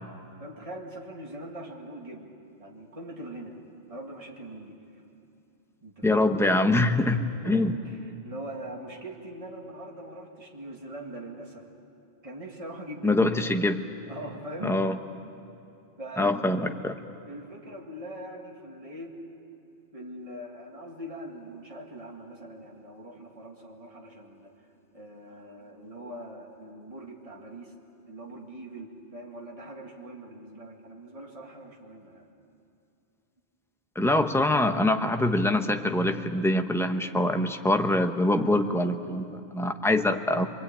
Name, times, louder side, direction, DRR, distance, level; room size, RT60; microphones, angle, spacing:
voice 1, 0.4-2.3 2.6-3.6 3.9-4.8 5.8-6.2 7.4-11.7 12.2-13.2 14.1-14.8 16.0-16.3 17.2-19.2 19.9-24.5 24.9-27.7 28.1-32.3, right 1 dB, 30° right, 0 dB, 2.1 m, -42 dB
voice 2, 6.0-7.7 13.0-13.8 14.6-15.0 16.2-17.0 33.9-40.5, left 1 dB, 5° left, 6 dB, 0.8 m, -24 dB
25.0 x 23.5 x 8.8 m, 2.7 s
omnidirectional pair, 1.1 m